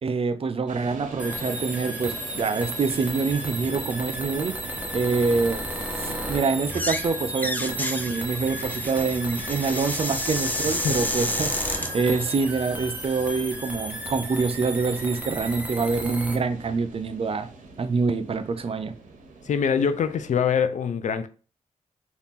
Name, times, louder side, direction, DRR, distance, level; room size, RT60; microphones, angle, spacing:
voice 1, 0.0-4.5 4.9-5.6 6.0-17.5 17.8-18.9, right 4 dB, 45° right, 0.4 m, -26 dB
sound 1, 0.7-20.6, right 4 dB, 70° right, 0.8 m, -43 dB
sound 2, 1.2-16.4, equal, 10° right, 0.9 m, -34 dB
sound 3, 6.6-7.1 7.3-11.9, left 1 dB, 10° left, 0.5 m, -30 dB
voice 2, 19.5-21.3, left 7 dB, 65° left, 0.4 m, -24 dB
2.8 x 2.4 x 3.5 m
cardioid pair, 60°, 13 cm